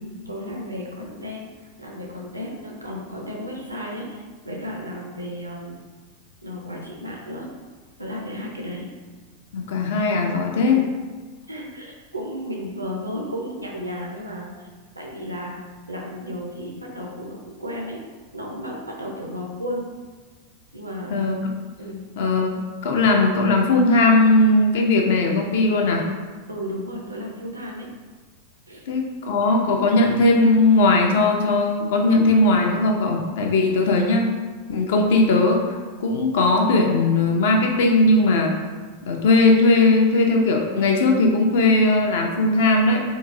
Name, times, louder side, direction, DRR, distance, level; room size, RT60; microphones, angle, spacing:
voice 1, 0.3-1.5 1.8-5.8 6.4-7.5 8.0-8.9 10.6-10.9 11.5-14.5 15.0-15.6 15.9-18.0 18.3-19.8 20.7-21.3 21.8-22.0 26.5-27.9 28.7-28.8, equal, 80° right, -1 dB, 0.6 m, -33 dB
voice 2, 9.5-10.8 21.1-21.4 22.2-22.6 22.8-26.0 28.9-34.3 34.7-35.7 36.0-38.5 39.1-43.0, left 2 dB, 55° left, 1 dB, 0.5 m, -18 dB
3.7 x 2.4 x 2.6 m, 1.4 s
figure-of-eight pair, 90°, 0 cm